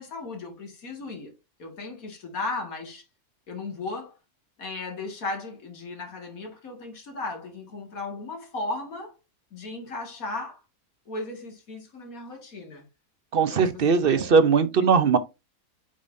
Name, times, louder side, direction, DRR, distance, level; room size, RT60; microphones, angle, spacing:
voice 1, 0.0-1.3 1.6-3.0 3.5-4.1 4.6-9.2 9.5-10.6 11.1-12.8 13.5-14.4, left 3 dB, 65° left, 2.4 m, -36 dB
voice 2, 13.3-15.2, right 5 dB, 50° right, 0.7 m, -20 dB
8.5 x 5.2 x 2.6 m
omnidirectional pair, 1.6 m